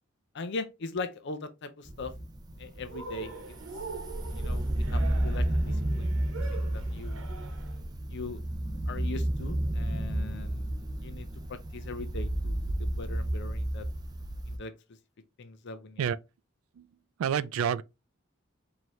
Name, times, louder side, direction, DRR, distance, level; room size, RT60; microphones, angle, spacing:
voice 1, 0.3-2.1 2.6-3.6 4.4-7.3 8.1-8.4 8.9-10.6 11.0-13.9 14.5-14.7 15.4-16.0, left 3 dB, 60° left, 0.5 m, -40 dB
sound 1, 1.9-14.6, right 1 dB, 20° right, 0.5 m, -32 dB
Cheering, 2.9-7.8, right 4 dB, 65° right, 1.0 m, -43 dB
voice 2, 17.2-17.8, right 8 dB, 85° right, 0.3 m, -28 dB
4.6 x 2.8 x 3.1 m
head